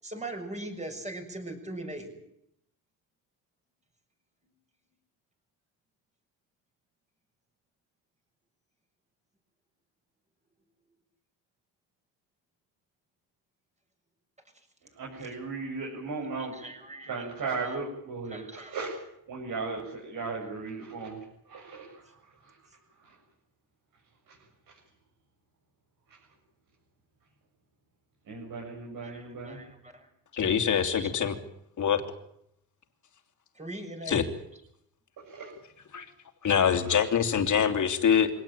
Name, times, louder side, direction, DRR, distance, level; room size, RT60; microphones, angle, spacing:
voice 1, 0.0-2.1 16.4-17.8 18.3-18.7 29.0-30.1 30.8-31.1 33.6-34.2, right 1 dB, 15° right, 4 dB, 6.8 m, -40 dB
voice 2, 14.8-16.7 17.1-19.0 19.3-22.6 23.0-23.2 24.3-24.4 24.7-24.8 26.1-26.2 28.2-29.6 35.2-35.6 36.6-37.0, right 4 dB, 55° right, -2 dB, 7.8 m, -37 dB
voice 3, 30.3-31.3 31.8-32.0 34.1-34.2 35.9-36.0 36.4-38.3, left 8 dB, 45° left, 6 dB, 3.1 m, -24 dB
24.5 x 18.0 x 9.0 m, 0.74 s
cardioid pair, 110°, 40 cm